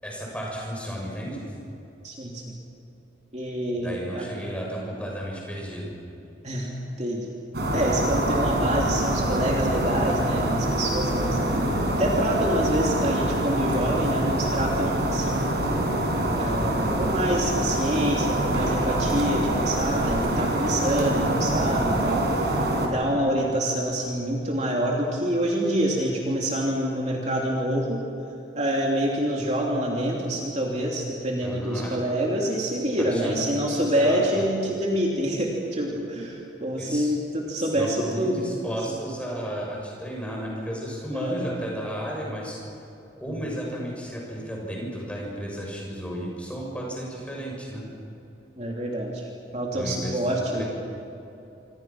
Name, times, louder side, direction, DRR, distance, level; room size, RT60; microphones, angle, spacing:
voice 1, 0.0-1.4 3.8-5.9 31.4-32.1 33.0-33.4 33.7-34.5 36.8-37.1 37.6-42.6 43.2-47.8 49.5-50.7, equal, 5° left, -3 dB, 7.1 m, -33 dB
voice 2, 2.0-2.4 3.3-4.3 6.4-7.3 7.7-11.4 11.9-15.5 16.4-22.2 22.8-28.0 28.5-38.7 41.1-41.4 48.6-50.7, right 1 dB, 35° right, -2 dB, 3.0 m, -26 dB
sound 1, 7.5-22.9, right 1 dB, 55° right, 5.1 m, -25 dB
27.0 x 26.5 x 6.1 m, 2.9 s
head